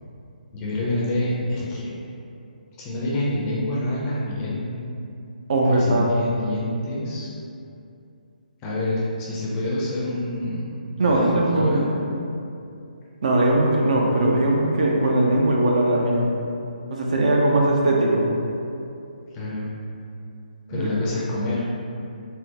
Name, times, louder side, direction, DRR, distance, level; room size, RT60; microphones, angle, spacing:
voice 1, 0.5-1.9 2.8-4.8 5.7-7.3 8.6-12.0 19.3-19.7 20.7-21.6, left 1 dB, 20° left, -6 dB, 0.5 m, -27 dB
voice 2, 5.5-6.1 11.0-11.9 13.2-16.3 16.9-18.3 20.7-20.9, right 1 dB, 50° right, -2 dB, 0.4 m, -20 dB
3.6 x 2.0 x 2.8 m, 2.6 s
figure-of-eight pair, 140°, 5 cm